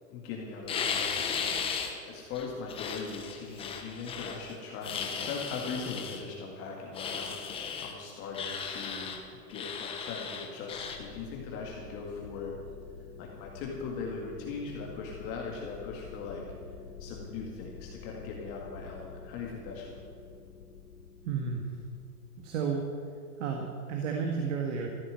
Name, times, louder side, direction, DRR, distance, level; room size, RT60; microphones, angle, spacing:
voice 1, 0.1-12.6 13.2-16.4 17.0-20.0, left 4 dB, 30° left, -1 dB, 1.9 m, -40 dB
sound 1, 0.7-1.9 2.4-4.4 4.8-6.2 6.9-7.9 8.3-9.2 9.5-11.0, left 6 dB, 10° left, 0.9 m, -35 dB
sound 2, 10.7-23.0, left 6 dB, 70° left, 1.2 m, -48 dB
voice 2, 21.2-21.7 22.4-22.8 23.4-24.9, right 6 dB, 55° right, 2 dB, 1.9 m, -32 dB
14.5 x 8.8 x 9.7 m, 2.4 s
supercardioid pair, 160°, 46 cm